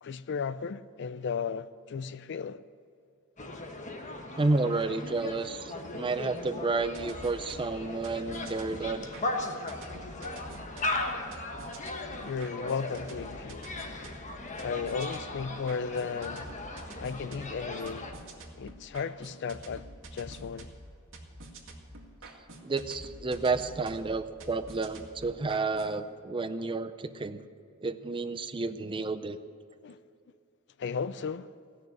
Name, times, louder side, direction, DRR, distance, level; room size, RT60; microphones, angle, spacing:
voice 1, 0.0-2.6 12.2-13.7 14.6-16.5 17.0-18.1 18.6-19.9 20.1-20.7 29.8-30.0 30.8-31.5, left 6 dB, 55° left, 0.4 m, -35 dB
sound 1, 3.4-18.1, left 2 dB, 35° left, 1.2 m, -38 dB
voice 2, 4.4-9.1 22.6-27.4 27.8-29.4, right 3 dB, 25° right, 0.5 m, -31 dB
sound 2, 6.8-26.0, right 1 dB, 60° right, 2.1 m, -48 dB
17.0 x 6.6 x 9.8 m
head